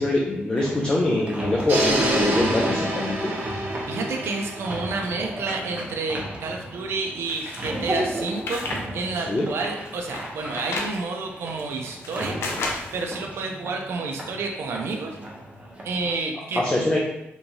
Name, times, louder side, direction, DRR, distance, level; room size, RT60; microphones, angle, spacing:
voice 1, 0.0-3.3 9.3-9.5 16.6-17.0, left 2 dB, 25° left, -3 dB, 0.5 m, -23 dB
sound 1, 0.5-16.1, right 1 dB, 30° right, 0.6 m, -36 dB
sound 2, 1.7-5.7, right 1 dB, 55° right, 0.9 m, -27 dB
voice 2, 3.9-15.2 15.8-16.6, right 3 dB, 70° right, 2 dB, 0.4 m, -30 dB
sound 3, 7.3-8.8 9.2-11.0 11.6-13.0, left 2 dB, 75° left, 0.6 m, -32 dB
3.5 x 3.0 x 2.7 m, 0.84 s
cardioid pair, 115°, 4 cm